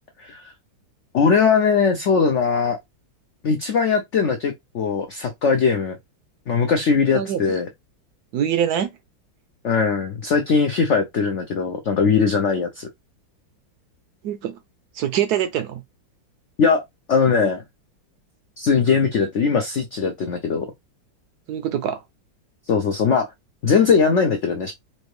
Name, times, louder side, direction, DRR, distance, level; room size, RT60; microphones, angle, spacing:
voice 1, 0.2-0.5 1.1-2.8 3.4-6.0 6.5-7.7 9.6-12.9 16.6-16.8 17.1-17.6 18.6-20.7 22.7-23.3 23.6-24.7, left 5 dB, 85° left, 0.6 m, -20 dB
voice 2, 8.3-8.9 14.2-14.6 14.9-15.8 21.5-22.0, right 9 dB, 70° right, 1.0 m, -24 dB
4.4 x 2.7 x 3.2 m
omnidirectional pair, 2.0 m